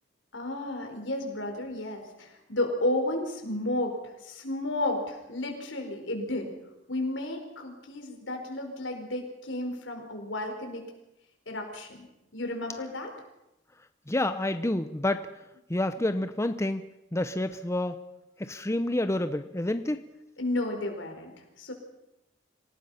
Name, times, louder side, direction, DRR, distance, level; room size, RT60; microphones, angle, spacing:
voice 1, 0.3-6.5 6.9-10.8 11.5-12.0 12.3-13.1 20.4-21.7, left 1 dB, 80° left, 3 dB, 4.9 m, -32 dB
voice 2, 14.1-15.3 15.7-16.8 17.1-18.0 18.4-20.1, left 1 dB, 15° left, 10 dB, 0.7 m, -28 dB
26.5 x 18.0 x 5.8 m, 0.93 s
head